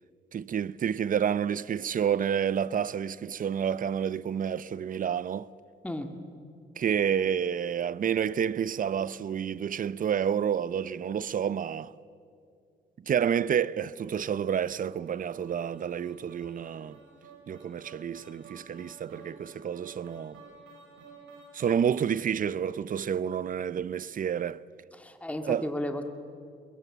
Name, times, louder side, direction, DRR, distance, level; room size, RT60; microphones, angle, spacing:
voice 1, 0.3-5.5 6.8-11.9 13.1-17.0 17.5-20.4 21.5-24.6 25.5-25.7, right 8 dB, 45° right, 0.6 m, -29 dB
sound 1, 14.8-22.2, right 4 dB, 85° right, 5.8 m, -52 dB
voice 2, 24.9-26.0, left 1 dB, 5° left, 1.9 m, -33 dB
23.5 x 21.0 x 7.3 m
cardioid pair, 90°, 20 cm